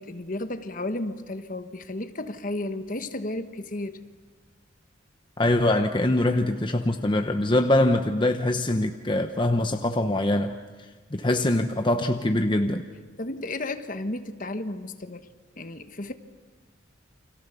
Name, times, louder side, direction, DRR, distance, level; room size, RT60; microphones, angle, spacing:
voice 1, 0.0-4.0 13.2-15.3 15.6-16.1, left 2 dB, 45° left, 9 dB, 1.3 m, -33 dB
voice 2, 5.4-10.5 11.1-12.9, left 1 dB, 25° left, 6 dB, 0.9 m, -23 dB
30.0 x 25.5 x 6.9 m, 1.4 s
head